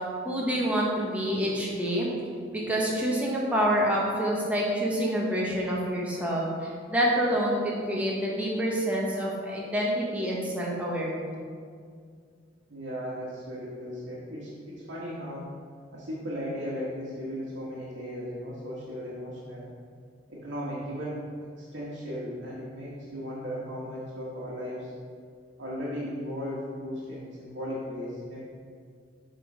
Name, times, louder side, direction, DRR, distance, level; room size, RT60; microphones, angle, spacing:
voice 1, 0.2-2.1 2.5-11.3, equal, 10° right, -5 dB, 1.1 m, -27 dB
voice 2, 12.7-15.4 15.9-19.7 20.3-24.9 25.6-28.4, equal, 80° right, -8 dB, 1.3 m, -36 dB
7.6 x 3.8 x 5.0 m, 2.1 s
head